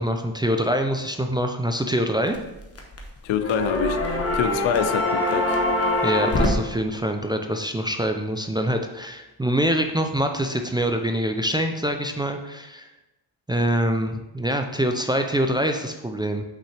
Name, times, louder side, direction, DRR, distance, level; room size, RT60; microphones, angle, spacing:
voice 1, 0.0-2.4 6.0-12.9 13.5-16.4, equal, 10° right, 0.3 m, -25 dB
sound 1, 2.3-3.1 3.4-6.5, left 1 dB, 30° left, 1.0 m, -23 dB
voice 2, 3.2-5.6, left 8 dB, 85° left, 0.6 m, -26 dB
6.1 x 5.4 x 3.3 m
cardioid pair, 120°, 45 cm